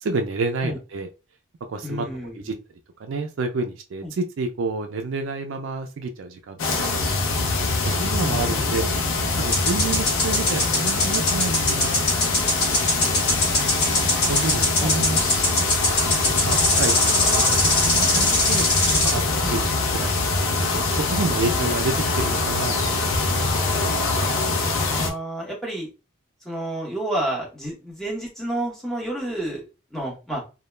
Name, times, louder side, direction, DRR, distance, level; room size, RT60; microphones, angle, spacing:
voice 1, 0.0-1.1 1.7-2.5 3.0-7.1 7.8-8.9 9.3-12.5 12.8-13.0 14.3-15.2 15.6-18.7 19.0-22.9 23.3-23.6, right 3 dB, 70° right, 6 dB, 0.4 m, -29 dB
voice 2, 1.8-2.4 4.0-4.1 8.2-8.7 9.5-9.6 13.8-14.9 19.4-19.5 24.8-25.9 26.4-30.4, right 1 dB, ahead, -4 dB, 0.7 m, -31 dB
sound 1, 6.6-25.1, left 3 dB, 80° left, 0.6 m, -24 dB
sound 2, 9.5-19.2, left 2 dB, 50° left, 1.2 m, -23 dB
2.2 x 2.0 x 3.1 m, 0.31 s
head